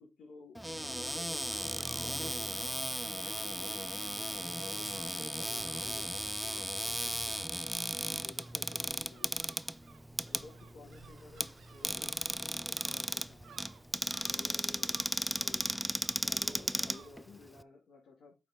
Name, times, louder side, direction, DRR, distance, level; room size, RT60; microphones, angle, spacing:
voice 1, 0.0-2.6 3.4-7.7 8.2-9.6 10.3-12.1 12.4-13.6 14.2-15.0 15.4-18.4, left 3 dB, 65° left, -2 dB, 2.3 m, -54 dB
Cupboard open or close, 0.5-17.6, equal, ahead, 0.4 m, -36 dB
sound 1, 1.4-17.1, right 8 dB, 65° right, 0.8 m, -60 dB
7.9 x 4.4 x 5.1 m, 0.28 s
cardioid pair, 90°, 0 cm